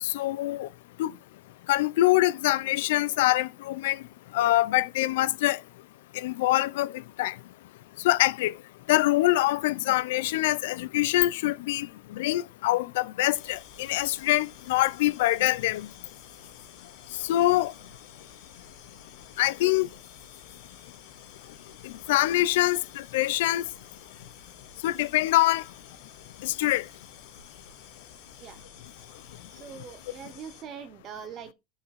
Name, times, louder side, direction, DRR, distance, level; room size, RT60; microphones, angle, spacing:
voice 1, 0.0-0.7 1.0-1.1 1.7-4.0 4.3-5.6 6.1-7.4 8.0-8.5 8.9-15.9 17.2-17.7 19.4-19.9 21.8-23.7 24.8-25.6 26.4-26.9, left 16 dB, 80° left, 0.5 m, -24 dB
sound 1, 13.3-30.6, left 7 dB, 55° left, 3.5 m, -51 dB
voice 2, 29.5-31.5, right 7 dB, 30° right, 0.8 m, -42 dB
6.8 x 5.7 x 4.0 m
supercardioid pair, 170°, 0 cm